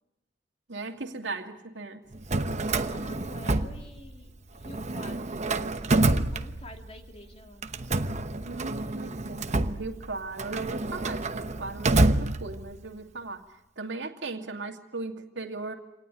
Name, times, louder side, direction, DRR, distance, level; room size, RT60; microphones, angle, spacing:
voice 1, 0.7-2.0 8.4-13.4 13.8-15.7, right 3 dB, 80° right, 4 dB, 2.4 m, -37 dB
Drawer open or close, 2.1-4.3 4.6-7.0 7.6-12.9, right 2 dB, 40° right, 1.0 m, -28 dB
voice 2, 2.8-7.7, left 1 dB, 35° left, 3 dB, 2.7 m, -48 dB
26.5 x 18.5 x 10.0 m, 0.92 s
head